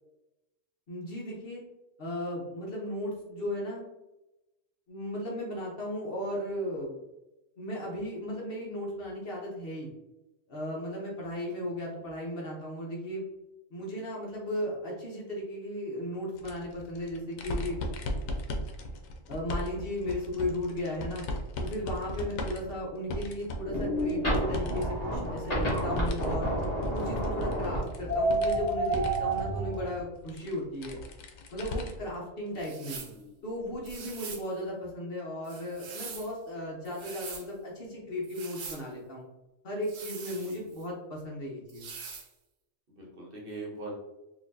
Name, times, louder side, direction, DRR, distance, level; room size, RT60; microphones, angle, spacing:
voice 1, 0.9-1.6 2.0-3.8 4.9-7.0 7.6-9.9 10.5-13.2 13.7-17.8 19.3-21.3 21.6-26.5 26.9-31.0 31.5-33.0 33.4-39.2 39.6-41.9, left 1 dB, 50° left, -3 dB, 1.0 m, -36 dB
sound 1, 16.4-24.8 25.2-32.2 32.6-32.7 33.9-34.0, left 1 dB, 90° left, 1.0 m, -38 dB
sound 2, 23.6-29.8, right 1 dB, 30° left, 1.3 m, -29 dB
sound 3, 32.6-33.2 33.8-34.5 35.4-36.3 36.8-37.5 38.2-38.8 39.8-40.9 41.7-42.3, right 5 dB, 75° right, 1.1 m, -43 dB
voice 2, 32.8-33.4 40.4-40.6 42.9-44.0, right 2 dB, 50° right, -2 dB, 1.0 m, -43 dB
4.2 x 2.6 x 2.6 m, 0.98 s
omnidirectional pair, 1.4 m